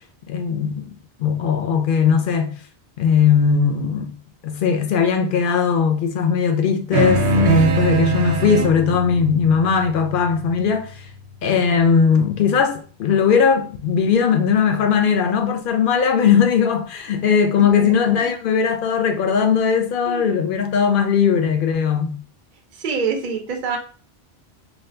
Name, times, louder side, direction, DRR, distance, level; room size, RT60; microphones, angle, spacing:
voice 1, 0.3-0.9 1.2-2.6 3.0-4.2 4.4-10.9 11.4-22.2, left 6 dB, 60° left, 0.6 m, -19 dB
sound 1, 6.9-11.7, right 2 dB, 85° right, 0.9 m, -22 dB
voice 2, 20.1-20.4 22.7-23.8, right 5 dB, 50° right, 0.7 m, -26 dB
2.7 x 2.3 x 3.3 m
omnidirectional pair, 1.1 m